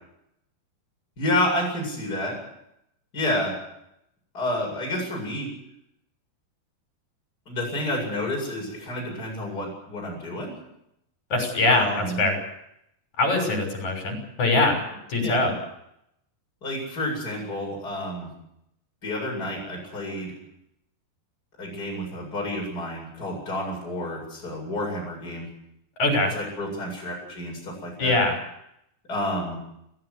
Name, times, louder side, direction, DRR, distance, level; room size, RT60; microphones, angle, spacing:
voice 1, 1.2-2.4 3.1-3.5 4.3-5.5 7.5-10.5 11.7-12.2 15.2-15.5 16.6-18.3 19.0-20.3 21.6-25.5 26.3-28.2 29.1-29.6, left 1 dB, 20° left, -1 dB, 8.5 m, -29 dB
voice 2, 11.3-12.4 13.2-14.8 15.1-15.5 26.0-26.3 28.0-28.4, left 2 dB, 45° left, 4 dB, 7.4 m, -22 dB
29.5 x 14.5 x 8.2 m, 0.80 s
omnidirectional pair, 4.6 m